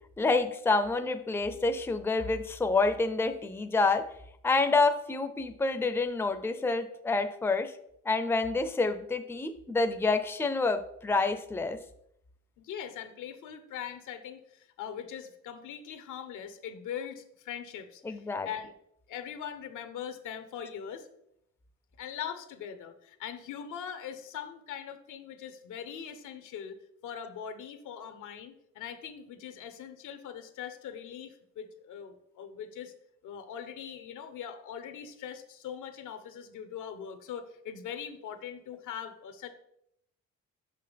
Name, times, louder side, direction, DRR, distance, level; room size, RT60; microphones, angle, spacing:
voice 1, 0.2-4.1 4.4-7.7 8.0-11.8 18.0-18.5, left 3 dB, 10° left, 9 dB, 0.5 m, -28 dB
voice 2, 12.6-18.7 19.1-21.1 22.0-26.8 27.0-32.9 33.2-39.5, left 8 dB, 85° left, 9 dB, 0.8 m, -41 dB
6.2 x 5.7 x 3.4 m, 0.75 s
cardioid pair, 90°, 30 cm